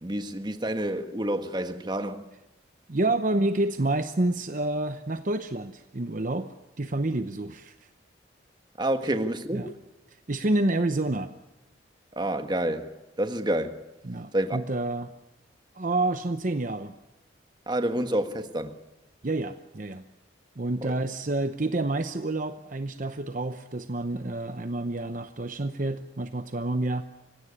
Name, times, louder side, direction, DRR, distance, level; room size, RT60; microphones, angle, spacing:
voice 1, 0.0-2.2 8.8-9.7 12.1-13.8 14.3-14.6 17.7-18.7 20.8-20.9, right 1 dB, 25° right, 1.4 m, -28 dB
voice 2, 2.9-7.8 9.5-9.7 10.3-11.3 14.0-15.1 15.7-16.9 19.2-20.0 20.6-27.0, right 2 dB, 45° right, 0.8 m, -28 dB
25.5 x 16.5 x 9.8 m
head